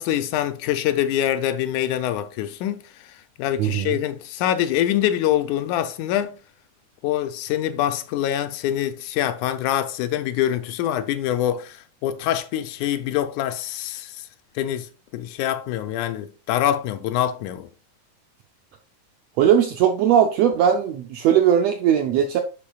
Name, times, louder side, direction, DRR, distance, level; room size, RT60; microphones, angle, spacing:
voice 1, 0.0-3.1 3.4-6.4 7.0-14.3 14.6-17.7, left 11 dB, 80° left, 2.0 m, -25 dB
voice 2, 3.6-4.0 19.4-22.4, right 9 dB, 80° right, 1.5 m, -19 dB
10.5 x 4.8 x 2.3 m
omnidirectional pair, 3.5 m